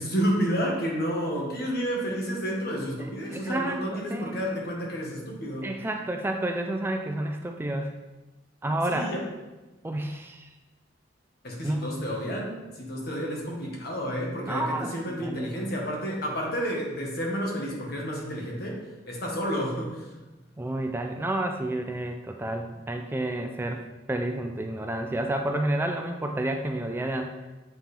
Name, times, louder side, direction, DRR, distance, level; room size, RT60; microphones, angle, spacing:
voice 1, 0.0-5.7 8.9-9.2 11.4-18.8 19.1-20.1, equal, 60° left, -2 dB, 1.4 m, -30 dB
voice 2, 3.3-4.4 5.6-7.9 8.6-9.1 9.8-10.5 11.6-12.1 14.5-15.5 20.6-23.8 24.1-27.3, right 1 dB, 10° right, 4 dB, 0.3 m, -30 dB
7.5 x 4.3 x 3.4 m, 1.1 s
head